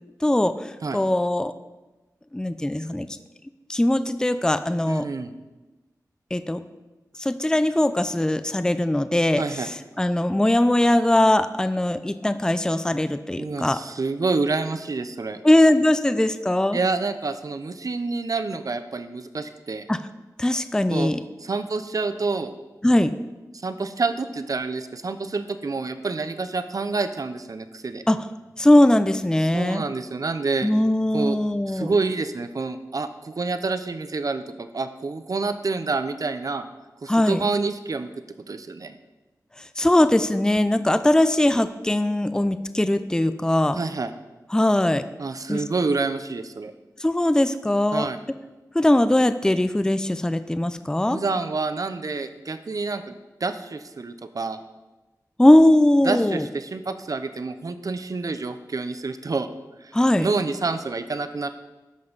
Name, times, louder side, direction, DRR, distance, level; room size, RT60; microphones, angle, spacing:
voice 1, 0.2-1.5 2.3-3.1 3.7-5.1 6.3-6.6 7.2-13.8 15.4-16.8 19.9-20.0 20.4-21.2 22.8-23.2 28.1-28.2 28.6-29.8 30.6-31.9 37.1-37.4 39.6-43.8 44.5-45.0 45.5-45.6 47.0-48.1 48.7-51.2 55.4-56.5 59.9-60.3, left 1 dB, 10° left, 11 dB, 0.4 m, -20 dB
voice 2, 4.9-5.3 9.4-9.7 13.4-15.4 16.7-19.9 20.9-21.1 21.4-22.5 23.6-28.0 29.5-30.7 31.1-31.4 31.7-36.6 37.0-38.1 38.5-39.0 43.8-44.1 45.2-46.7 47.9-48.2 51.1-53.1 53.4-54.6 56.0-59.5 59.8-59.9 60.2-61.5, right 3 dB, 60° right, 10 dB, 0.6 m, -28 dB
13.0 x 5.3 x 4.0 m, 1.1 s
cardioid pair, 50°, 7 cm